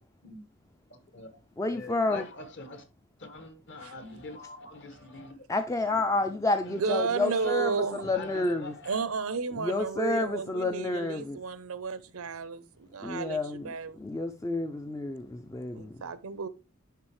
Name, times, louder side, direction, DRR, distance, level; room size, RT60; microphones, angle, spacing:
voice 1, 0.9-1.3 1.7-2.9 3.2-5.4 6.6-6.8 7.2-9.0, left 2 dB, 55° left, 1.3 m, -44 dB
voice 2, 1.6-2.2 5.5-8.7 9.6-11.4 13.0-16.0, left 2 dB, 15° left, 0.3 m, -30 dB
voice 3, 6.7-8.0 8.9-14.0 15.7-16.5, right 5 dB, 85° right, 0.7 m, -33 dB
10.5 x 3.7 x 3.2 m
head